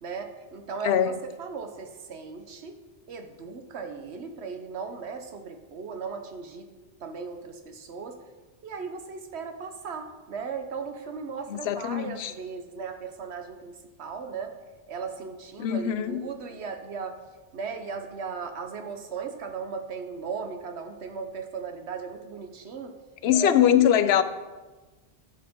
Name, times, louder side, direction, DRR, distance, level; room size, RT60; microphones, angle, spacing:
voice 1, 0.0-2.8 3.1-6.7 7.0-8.2 8.6-14.5 14.9-17.2 17.5-22.9 23.3-23.5, right 5 dB, 90° right, 6 dB, 1.2 m, -37 dB
voice 2, 0.8-1.2 11.5-12.3 15.6-16.3 23.2-24.2, left 10 dB, 80° left, 12 dB, 0.8 m, -22 dB
11.0 x 7.8 x 3.7 m, 1.2 s
omnidirectional pair, 1.1 m